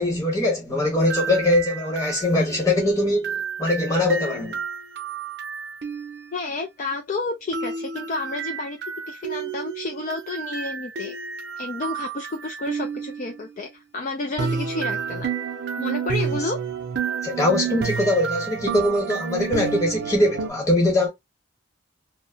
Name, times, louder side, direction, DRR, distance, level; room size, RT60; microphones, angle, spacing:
voice 1, 0.0-4.6 17.2-21.1, left 1 dB, 15° left, 1.1 m, -22 dB
sound 1, 1.0-6.3 7.5-13.3 14.4-20.5, right 6 dB, 55° right, 0.5 m, -30 dB
voice 2, 6.3-8.8 9.1-11.2 11.6-15.3 15.8-16.6, left 3 dB, 40° left, 0.3 m, -30 dB
2.7 x 2.1 x 2.6 m
head